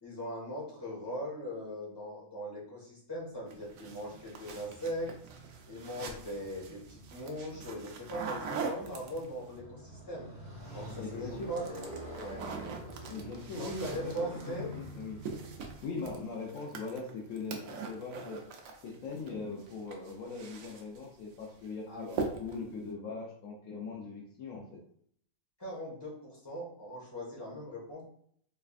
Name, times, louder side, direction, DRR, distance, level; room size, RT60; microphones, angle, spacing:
voice 1, 0.0-5.1 5.7-10.3 10.7-11.6 12.1-12.4 13.6-14.7 21.9-22.2 25.6-28.0, equal, 20° left, -6 dB, 1.3 m, -40 dB
Motorcycle, 3.2-15.8, right 1 dB, 30° right, 0.8 m, -47 dB
sound 1, 3.5-9.5 10.7-11.1 11.4-19.3 19.6-21.1 21.4-21.7 22.1-22.7, right 5 dB, 75° right, 1.0 m, -43 dB
voice 2, 11.0-11.6 13.1-14.3 14.6-15.2 15.8-18.4 18.8-24.8, left 4 dB, 70° left, -1 dB, 0.9 m, -40 dB
3.4 x 3.3 x 2.4 m, 0.64 s
omnidirectional pair, 1.5 m